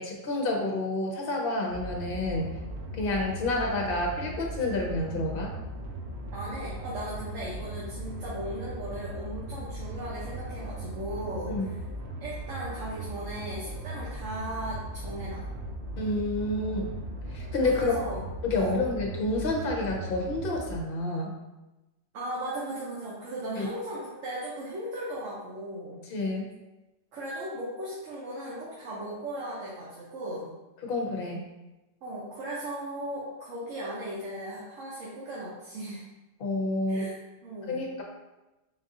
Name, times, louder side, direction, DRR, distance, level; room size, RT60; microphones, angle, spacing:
voice 1, 0.0-2.5 3.0-5.5 11.5-11.7 16.0-16.9 17.3-17.9 18.4-21.3 23.5-23.7 26.1-26.5 30.8-31.4 36.4-37.1 37.7-38.0, left 2 dB, 50° left, 1 dB, 0.9 m, -29 dB
sound 1, 1.7-20.8, right 1 dB, 65° right, 0.9 m, -38 dB
voice 2, 6.3-11.5 12.2-15.5 16.7-16.8 17.7-18.2 18.6-18.8 22.1-26.1 27.1-30.5 32.0-36.0 36.9-37.2 37.4-38.0, right 1 dB, 80° right, -7 dB, 1.2 m, -37 dB
4.0 x 2.6 x 3.7 m, 1.0 s
omnidirectional pair, 1.3 m